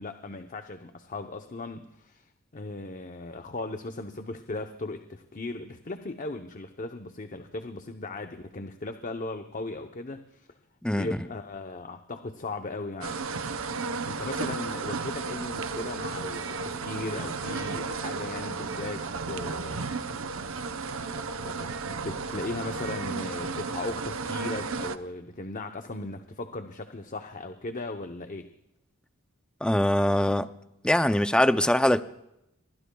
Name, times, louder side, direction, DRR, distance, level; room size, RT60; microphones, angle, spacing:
voice 1, 0.0-2.3 2.5-10.5 10.9-13.2 14.1-19.9 20.9-21.1 21.4-28.5, left 2 dB, 40° left, 0.8 m, -37 dB
sound 1, 13.0-25.0, right 4 dB, 70° right, 0.8 m, -33 dB
voice 2, 29.6-30.5 30.8-32.0, left 1 dB, 5° left, 0.5 m, -22 dB
26.5 x 23.5 x 2.3 m
head